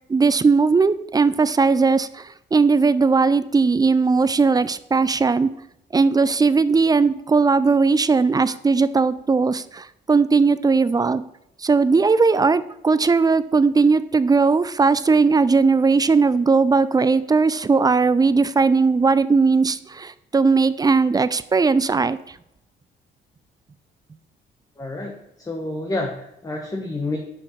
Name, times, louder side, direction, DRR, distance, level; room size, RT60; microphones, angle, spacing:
voice 1, 0.1-5.5 5.9-11.2 11.6-22.2, right 4 dB, 20° right, 15 dB, 0.4 m, -18 dB
voice 2, 24.8-27.2, left 2 dB, 15° left, 2 dB, 1.1 m, -29 dB
5.5 x 5.3 x 6.3 m, 0.80 s
cardioid pair, 90°, 20 cm